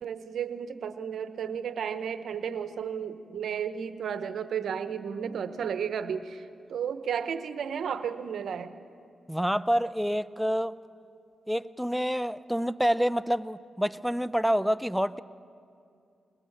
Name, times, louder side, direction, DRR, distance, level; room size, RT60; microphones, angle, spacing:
voice 1, 0.0-8.8, right 7 dB, 80° right, 11 dB, 0.9 m, -33 dB
voice 2, 9.3-10.7 11.5-15.2, equal, ahead, 14 dB, 0.6 m, -27 dB
22.0 x 20.0 x 7.3 m, 2.4 s
cardioid pair, 60°, 0 cm